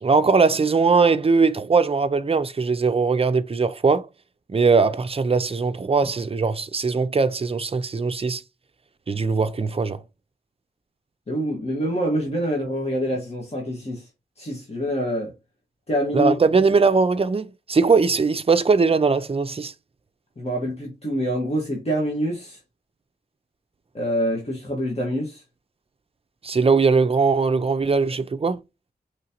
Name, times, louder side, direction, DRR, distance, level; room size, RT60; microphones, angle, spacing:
voice 1, 0.0-4.1 4.5-8.4 9.1-10.0 16.1-19.7 26.4-28.6, right 4 dB, 35° right, 0.5 m, -20 dB
voice 2, 11.3-14.1 14.4-15.3 15.9-16.3 20.4-22.6 23.9-25.4, equal, 40° left, 1.5 m, -26 dB
5.1 x 3.2 x 2.9 m
wide cardioid pair, 85°, 17 cm